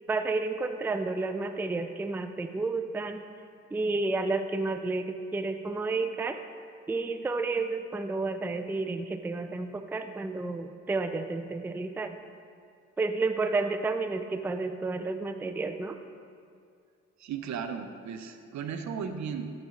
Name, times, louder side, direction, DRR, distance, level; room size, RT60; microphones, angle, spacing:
voice 1, 0.1-3.2 3.7-6.4 6.9-12.2 13.0-16.0, right 3 dB, 5° right, 8 dB, 0.4 m, -31 dB
voice 2, 17.2-19.5, right 6 dB, 65° right, 8 dB, 0.7 m, -35 dB
10.5 x 4.2 x 5.1 m, 2.3 s
supercardioid pair, 60°, 30 cm